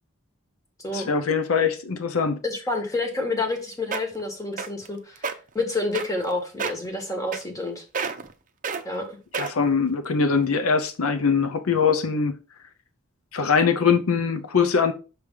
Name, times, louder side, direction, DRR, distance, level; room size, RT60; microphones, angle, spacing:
voice 1, 0.9-2.4 9.3-12.4 13.3-14.9, left 5 dB, 85° left, 0.7 m, -22 dB
voice 2, 2.4-5.2 5.5-7.8 8.8-9.2, left 2 dB, 15° left, 1.4 m, -28 dB
sound 1, 3.5-3.6 3.9-4.2 4.6-4.9 5.2-5.3 5.9-6.3 6.6-6.9 7.3-7.7 7.9-8.3 8.6-8.8 9.3-9.7 10.3-10.4, right 5 dB, 40° right, 0.6 m, -29 dB
6.1 x 3.3 x 5.3 m
head